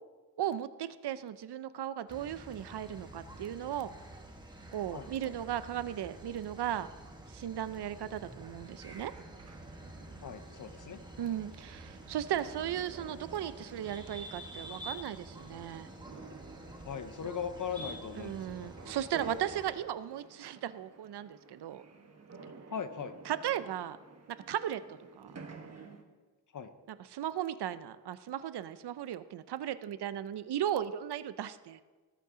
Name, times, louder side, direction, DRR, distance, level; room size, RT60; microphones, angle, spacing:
voice 1, 0.4-3.9 4.7-6.9 7.3-9.1 11.2-15.9 18.2-21.8 23.3-24.0 24.3-25.3 26.9-31.8, right 11 dB, 80° right, 14 dB, 0.6 m, -36 dB
sound 1, 2.1-19.7, right 1 dB, 10° right, 1.2 m, -49 dB
voice 2, 4.9-5.3 10.2-11.3 16.8-18.7 22.7-23.2 26.5-26.7, left 7 dB, 50° left, 10 dB, 0.8 m, -40 dB
sound 2, 7.9-26.0, right 4 dB, 40° right, 1.2 m, -52 dB
18.5 x 8.4 x 3.8 m, 1.4 s
wide cardioid pair, 150°, 40 cm